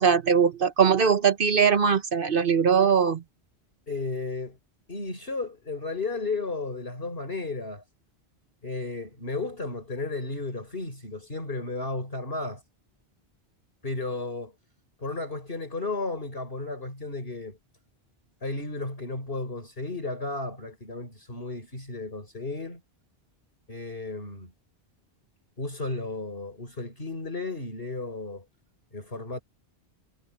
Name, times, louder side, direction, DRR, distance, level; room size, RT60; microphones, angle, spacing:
voice 1, 0.0-3.2, right 6 dB, 55° right, 1.4 m, -21 dB
voice 2, 3.9-4.6 4.9-7.8 8.6-12.6 13.8-14.5 15.0-17.6 18.4-22.8 23.7-24.5 25.6-28.5 28.9-29.4, left 3 dB, 60° left, 5.4 m, -33 dB
omnidirectional pair, 1.1 m